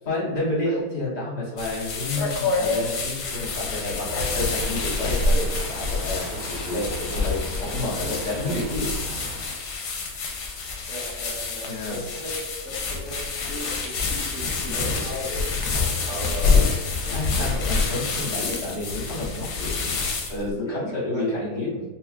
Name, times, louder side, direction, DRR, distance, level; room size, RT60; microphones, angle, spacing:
voice 1, 0.0-8.9 11.7-12.0 17.0-19.9 20.3-21.8, left 1 dB, 30° left, -9 dB, 1.2 m, -30 dB
sound 1, 1.6-20.5, left 4 dB, 90° left, 1.3 m, -27 dB
sound 2, 4.2-9.4, right 2 dB, 70° right, 0.9 m, -38 dB
voice 2, 10.9-12.4 12.6-15.4 16.1-16.6 17.2-17.7 18.4-18.5 20.6-20.8 21.1-21.6, equal, 50° left, -8 dB, 1.4 m, -36 dB
5.3 x 2.1 x 2.4 m, 1.3 s
omnidirectional pair, 1.7 m